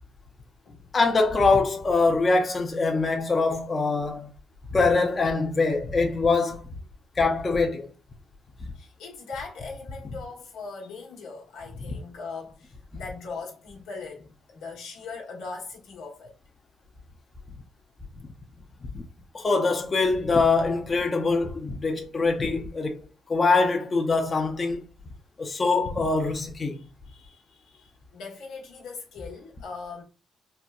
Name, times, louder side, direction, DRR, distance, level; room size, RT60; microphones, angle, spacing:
voice 1, 0.9-4.3 4.7-6.6 7.2-7.9 8.6-8.7 18.8-19.0 19.3-23.0 23.3-24.9 25.4-26.8, left 3 dB, 35° left, 0.6 m, -23 dB
voice 2, 8.7-16.3 18.1-18.3 22.0-22.1 26.7-30.0, left 4 dB, 90° left, 1.2 m, -40 dB
4.1 x 2.2 x 2.3 m
cardioid pair, 90°, 0 cm